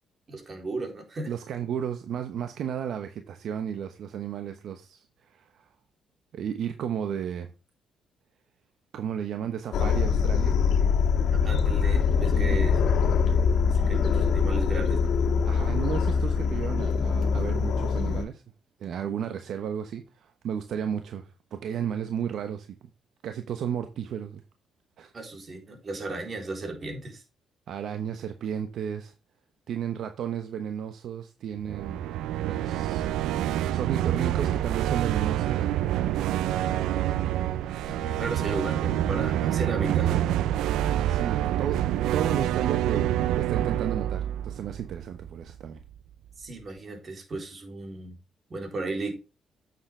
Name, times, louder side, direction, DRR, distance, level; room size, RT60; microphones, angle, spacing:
voice 1, 0.3-1.3 11.3-12.8 13.7-15.1 25.1-27.2 36.7-37.6 37.8-40.4 46.4-48.1 48.5-49.1, right 3 dB, 40° right, 3.8 m, -35 dB
voice 2, 1.3-5.7 6.3-7.5 8.9-10.6 12.3-12.6 15.4-18.4 18.8-22.8 23.2-24.4 25.0-25.1 27.7-29.1 29.7-32.1 32.4-35.7 41.1-41.8 42.1-45.8, right 8 dB, 70° right, 1.0 m, -33 dB
sound 1, 9.7-18.2, left 6 dB, 70° left, 1.8 m, -23 dB
sound 2, 31.6-45.6, right 12 dB, 90° right, 0.5 m, -27 dB
8.9 x 7.4 x 3.3 m
cardioid pair, 90°, 0 cm